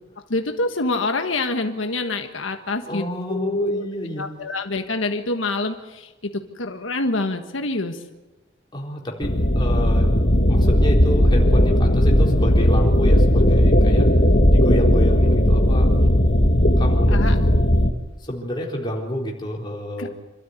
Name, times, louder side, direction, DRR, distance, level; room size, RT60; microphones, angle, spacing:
voice 1, 0.3-3.8 4.2-6.3 6.6-8.0 17.1-17.3 20.0-20.1, left 2 dB, 80° left, 5 dB, 1.5 m, -26 dB
voice 2, 2.9-4.3 8.7-10.1 10.5-14.1 14.5-16.0 16.8-17.4 18.2-20.1, equal, 25° left, -2 dB, 4.2 m, -29 dB
sound 1, 9.2-17.9, equal, 50° left, 2.0 m, -16 dB
27.0 x 13.0 x 9.6 m, 1.1 s
head